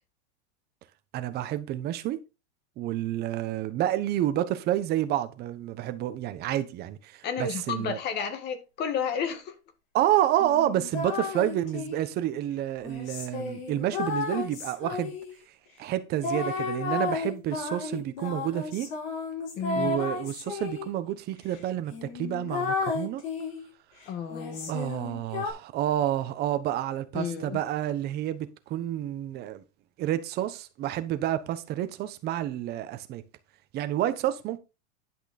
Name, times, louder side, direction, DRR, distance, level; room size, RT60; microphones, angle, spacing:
voice 1, 1.1-2.2 2.8-8.0 9.9-15.1 15.8-18.9 19.7-23.2 24.7-29.6 30.0-33.2 33.7-34.6, right 12 dB, 30° right, 1.0 m, -29 dB
voice 2, 7.2-9.6 19.6-20.0 24.1-24.7 27.1-27.6, left 6 dB, 30° left, 1.8 m, -32 dB
sound 1, 10.4-12.1 12.8-15.4 16.2-20.9 21.5-21.6 21.9-23.7 24.3-25.5, left 4 dB, 55° left, 4.8 m, -33 dB
10.5 x 5.9 x 4.3 m
supercardioid pair, 150°, 34 cm